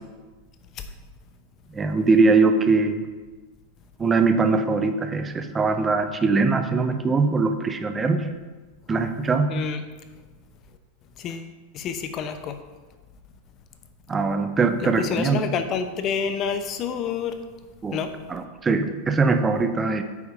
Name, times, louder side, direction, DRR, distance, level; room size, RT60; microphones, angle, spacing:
voice 1, 1.7-3.0 4.0-8.3 8.9-9.6 14.1-15.4 17.8-18.0 18.3-20.0, right 4 dB, 20° right, 8 dB, 0.8 m, -21 dB
voice 2, 9.5-9.8 11.2-11.5 11.7-12.6 14.8-17.4 17.9-18.1, left 6 dB, 40° left, 9 dB, 0.8 m, -28 dB
8.3 x 4.7 x 5.5 m, 1.3 s
hypercardioid pair, 90°, 0 cm